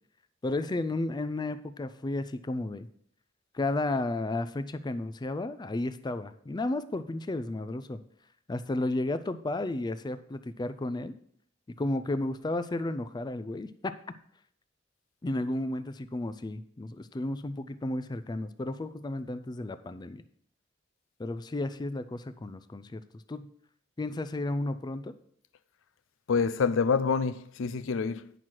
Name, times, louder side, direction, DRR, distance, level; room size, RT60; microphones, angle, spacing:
voice 1, 0.4-2.9 3.5-8.0 8.5-11.1 11.8-13.9 15.2-20.2 21.2-23.0 23.3-23.5 24.0-25.1, left 2 dB, 20° left, 0.4 m, -33 dB
voice 2, 26.3-28.3, left 5 dB, 85° left, 0.4 m, -27 dB
9.2 x 5.9 x 4.6 m
head